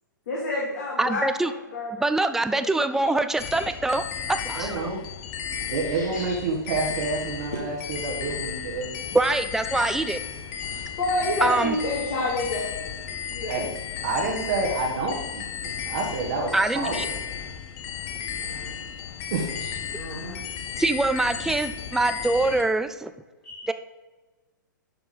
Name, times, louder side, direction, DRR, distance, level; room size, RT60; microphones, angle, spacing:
voice 1, 0.3-1.9 2.5-2.7 5.9-6.4 7.5-7.6 10.6-12.7 13.1-13.6 18.3-18.8 19.6-20.4 23.4-23.7, left 2 dB, 55° left, -5 dB, 2.5 m, -30 dB
voice 2, 1.0-1.5 1.9-4.7 9.1-10.2 11.4-11.8 16.5-17.1 20.8-23.1 23.7-23.8, right 2 dB, 5° right, 10 dB, 0.4 m, -24 dB
sound 1, 3.4-22.6, left 8 dB, 35° left, 1.0 m, -34 dB
voice 3, 4.5-5.0 5.7-9.0 13.5-13.7 14.0-17.1 19.3-19.7, right 3 dB, 50° right, 0 dB, 1.7 m, -28 dB
11.5 x 4.5 x 5.5 m, 1.2 s
figure-of-eight pair, 115°, 11 cm